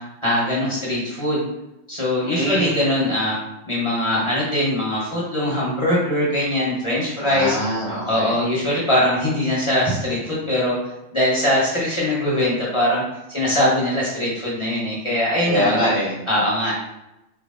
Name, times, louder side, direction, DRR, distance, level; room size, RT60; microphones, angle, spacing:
voice 1, 0.0-1.5 1.9-3.4 3.6-7.6 8.1-10.8 11.1-13.0 13.3-15.8 16.3-16.7, left 1 dB, 30° left, -7 dB, 1.2 m, -21 dB
voice 2, 2.3-2.7 7.2-8.3 15.4-16.1, equal, 30° right, -8 dB, 1.7 m, -23 dB
3.9 x 3.0 x 3.7 m, 0.91 s
omnidirectional pair, 1.1 m